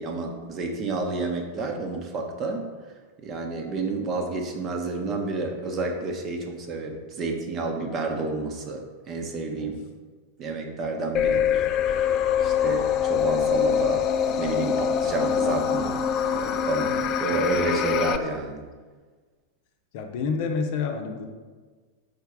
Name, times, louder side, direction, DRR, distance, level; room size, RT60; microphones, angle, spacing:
voice 1, 0.0-2.7 3.2-9.8 10.4-12.1 12.4-16.0 16.3-18.6, right 3 dB, 30° right, 3 dB, 0.9 m, -30 dB
sound 1, 11.1-18.2, left 8 dB, 35° left, 0.3 m, -24 dB
voice 2, 19.9-21.3, left 5 dB, 50° left, 3 dB, 0.7 m, -28 dB
5.1 x 4.6 x 4.7 m, 1.4 s
figure-of-eight pair, 90°, 0 cm